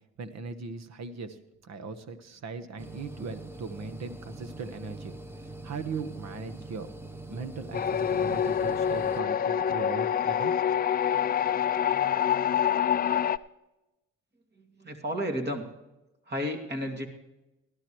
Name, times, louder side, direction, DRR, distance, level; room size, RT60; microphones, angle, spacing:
voice 1, 0.2-1.4 1.6-5.1 5.6-6.9 7.3-10.5, right 4 dB, 60° right, 10 dB, 1.3 m, -39 dB
sound 1, 2.8-9.2, right 2 dB, 10° right, 1.0 m, -43 dB
sound 2, 7.7-13.4, left 9 dB, 30° left, 0.4 m, -26 dB
voice 2, 14.8-15.7 16.3-17.1, equal, 35° right, 3 dB, 2.5 m, -32 dB
18.0 x 12.0 x 3.1 m, 0.98 s
cardioid pair, 90°, 30 cm